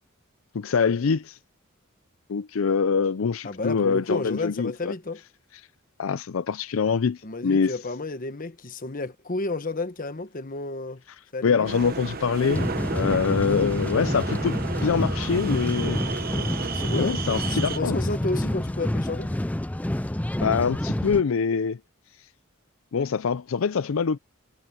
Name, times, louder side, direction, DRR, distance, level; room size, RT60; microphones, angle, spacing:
voice 1, 0.5-1.4 2.3-4.9 6.0-7.8 11.4-12.7 12.9-16.0 16.9-18.0 20.4-21.8 22.9-24.2, left 5 dB, 75° left, 0.5 m, -24 dB
voice 2, 3.4-5.2 7.2-11.0 11.3-11.7 16.4-19.4, left 2 dB, 40° left, 1.1 m, -32 dB
sound 1, 11.6-17.8, right 4 dB, 45° right, 1.0 m, -33 dB
sound 2, 12.5-21.2, left 1 dB, 5° left, 0.4 m, -28 dB
head